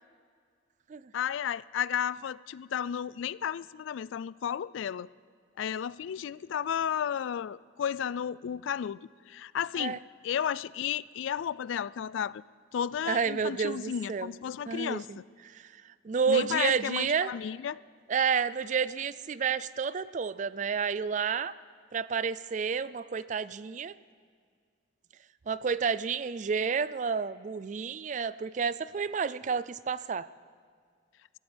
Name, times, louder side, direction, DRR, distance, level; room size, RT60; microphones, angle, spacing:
voice 1, 1.1-5.1 5.6-9.0 9.3-10.0 10.2-12.4 12.7-15.2 16.3-17.8, left 8 dB, 75° left, 0.3 m, -33 dB
voice 2, 13.1-14.3 14.7-15.2 15.4-17.3 18.1-21.5 21.9-23.9 25.5-30.3, right 6 dB, 40° right, 0.3 m, -30 dB
25.5 x 14.5 x 3.4 m
head